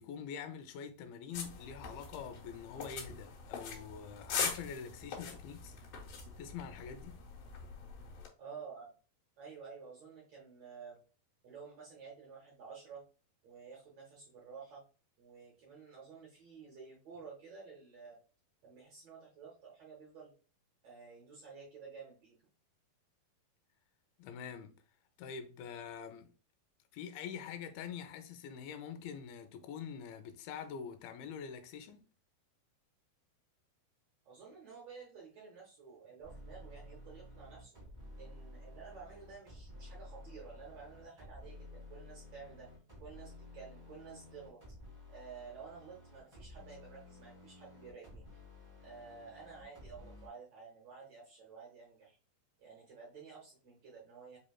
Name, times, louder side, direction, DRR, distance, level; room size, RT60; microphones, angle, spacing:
voice 1, 0.0-5.8 6.4-7.2 24.2-24.8 25.2-26.3 26.9-32.1, left 7 dB, 85° left, 2.5 m, -45 dB
sound 1, 1.3-8.3, left 5 dB, 70° left, 2.4 m, -42 dB
voice 2, 8.4-8.9 9.4-11.0 11.4-13.0 13.4-14.8 15.2-18.2 18.6-20.3 20.8-22.4 34.2-37.8 38.2-42.7 43.0-44.6 45.1-48.4 48.8-52.2 52.6-54.4, right 5 dB, 65° right, 1.7 m, -52 dB
sound 2, 36.2-50.3, left 1 dB, 30° right, 0.5 m, -53 dB
5.4 x 3.1 x 2.3 m
omnidirectional pair, 4.3 m